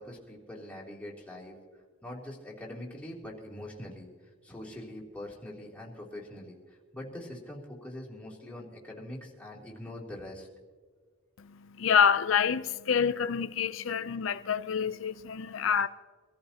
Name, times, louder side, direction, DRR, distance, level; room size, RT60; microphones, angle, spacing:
voice 1, 0.0-1.5 2.0-4.1 4.4-10.5, left 1 dB, 5° left, 3.0 m, -43 dB
voice 2, 11.4-15.9, left 7 dB, 65° left, 0.5 m, -27 dB
25.0 x 14.0 x 2.9 m
head